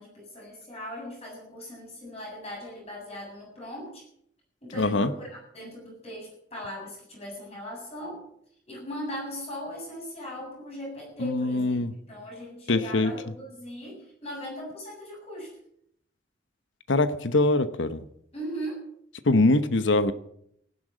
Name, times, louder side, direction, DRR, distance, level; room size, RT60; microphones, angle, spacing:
voice 1, 0.0-4.0 4.6-8.2 8.7-11.8 12.1-15.6 18.3-18.8, equal, 35° left, 7.7 m, -39 dB
voice 2, 4.7-5.1 11.2-11.9 12.7-13.1 16.9-18.1 19.2-20.1, left 2 dB, 90° left, 1.0 m, -23 dB
15.5 x 11.5 x 7.5 m
head